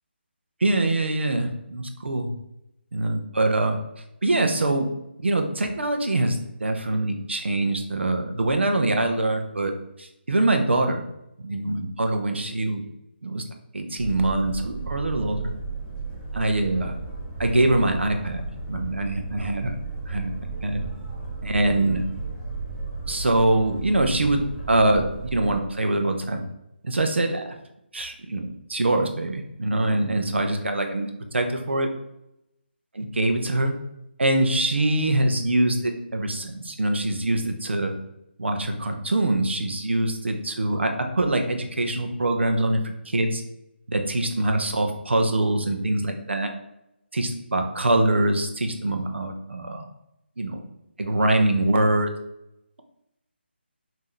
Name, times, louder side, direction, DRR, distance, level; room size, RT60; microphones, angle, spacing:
voice 1, 0.6-2.3 2.9-3.8 4.2-4.9 5.2-9.7 10.0-11.0 11.4-12.8 13.2-13.4 13.7-15.5 16.3-16.9 17.4-18.4 18.7-19.8 20.1-20.3 20.6-20.8 21.4-22.0 23.1-26.4 26.8-27.5 27.9-31.9 32.9-33.7 34.2-37.9 38.4-42.8 43.1-43.4 43.9-46.5 47.1-49.9 50.4-50.6 51.0-52.1, right 2 dB, 75° right, 5 dB, 0.9 m, -24 dB
Boat Water vehicle, 14.0-25.6, right 3 dB, 5° left, 0.8 m, -34 dB
5.4 x 2.9 x 3.2 m, 0.85 s
figure-of-eight pair, 155°, 6 cm